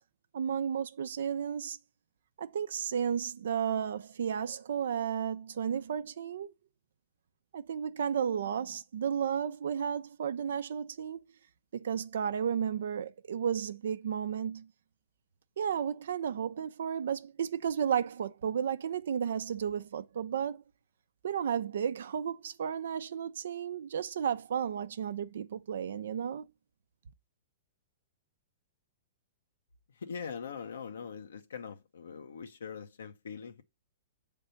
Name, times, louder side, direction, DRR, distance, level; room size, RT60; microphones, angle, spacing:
voice 1, 0.3-1.8 2.4-6.5 7.5-11.2 11.7-14.7 15.6-20.6 21.2-26.5, right 8 dB, 75° right, 0.6 m, -33 dB
voice 2, 30.0-33.6, left 6 dB, 85° left, 0.9 m, -42 dB
6.7 x 3.6 x 5.7 m
hypercardioid pair, 130°, 0 cm